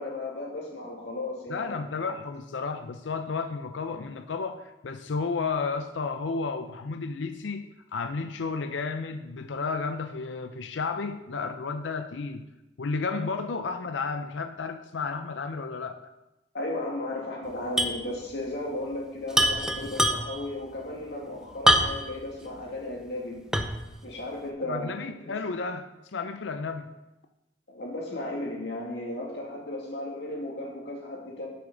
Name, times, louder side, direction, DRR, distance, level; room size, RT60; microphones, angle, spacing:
voice 1, 0.0-1.8 16.5-23.4 24.0-24.9 25.3-25.4 27.7-31.5, left 1 dB, 65° left, 2.5 m, -35 dB
voice 2, 1.5-12.5 12.8-16.0 24.7-26.9, left 4 dB, 85° left, 0.5 m, -32 dB
sound 1, 17.8-18.0 18.3-18.4 19.3-20.5 21.7-22.2 22.7-22.8 23.5-23.9, equal, 5° right, 0.7 m, -23 dB
13.0 x 6.9 x 3.9 m
head